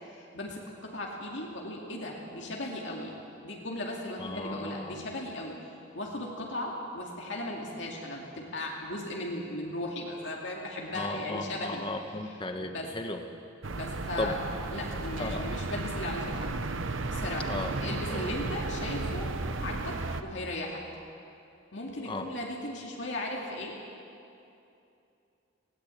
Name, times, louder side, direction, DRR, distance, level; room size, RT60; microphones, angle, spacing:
voice 1, 0.0-3.1 3.4-5.6 5.9-12.9 13.7-14.3 14.7-16.5 17.1-17.5 17.8-19.3 19.6-20.0 20.2-20.8 21.7-23.7, left 1 dB, 65° left, -2 dB, 2.5 m, -37 dB
voice 2, 4.2-5.0 10.9-13.2 14.2-14.4 15.2-15.4 17.5-18.6 22.1-22.3, left 2 dB, 25° left, 5 dB, 1.3 m, -36 dB
sound 1, 13.6-20.2, right 3 dB, 85° right, 1.0 m, -34 dB
19.0 x 17.0 x 8.5 m, 2.7 s
head